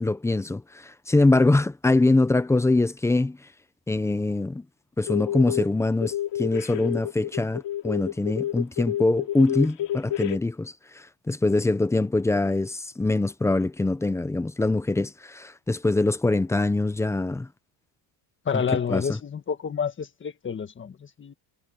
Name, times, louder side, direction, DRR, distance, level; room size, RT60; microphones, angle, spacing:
voice 1, 0.0-3.4 3.9-4.6 5.0-17.5 18.9-19.0, left 2 dB, 5° left, 0.4 m, -23 dB
sound 1, 5.1-5.7 6.0-10.4, left 12 dB, 65° left, 2.5 m, -29 dB
voice 2, 18.4-21.3, left 6 dB, 25° left, 1.6 m, -29 dB
cardioid pair, 165°, 47 cm